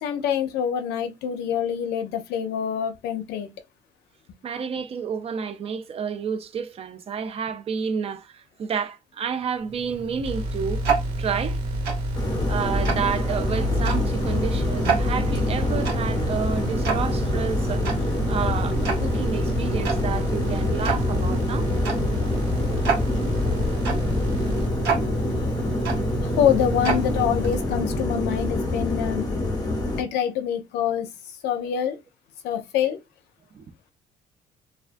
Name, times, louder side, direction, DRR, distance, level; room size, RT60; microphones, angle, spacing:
voice 1, 0.0-3.5 23.4-23.6 26.2-29.3 30.0-31.1 31.4-32.0 32.4-33.0, left 9 dB, 80° left, 0.5 m, -25 dB
voice 2, 4.4-10.8 11.2-11.6 12.5-21.7 29.8-29.9 33.5-33.7, right 6 dB, 35° right, 0.4 m, -30 dB
Tick-tock, 9.6-27.9, right 6 dB, 90° right, 1.0 m, -30 dB
sound 1, 10.2-24.7, left 2 dB, 65° right, 1.2 m, -30 dB
sound 2, 12.1-30.0, left 2 dB, 25° left, 0.8 m, -26 dB
2.3 x 2.3 x 2.4 m
cardioid pair, 110°, 17 cm